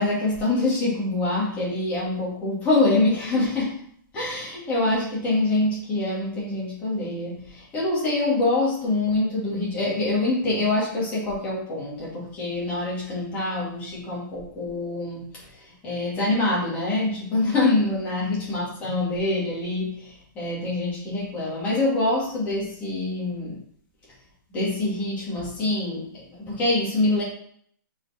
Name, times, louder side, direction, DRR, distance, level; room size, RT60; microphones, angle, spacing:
voice 1, 0.0-3.8 4.1-23.6 24.5-27.2, left 2 dB, 15° left, -6 dB, 2.6 m, -25 dB
6.2 x 5.1 x 4.5 m, 0.62 s
hypercardioid pair, 175°, 11 cm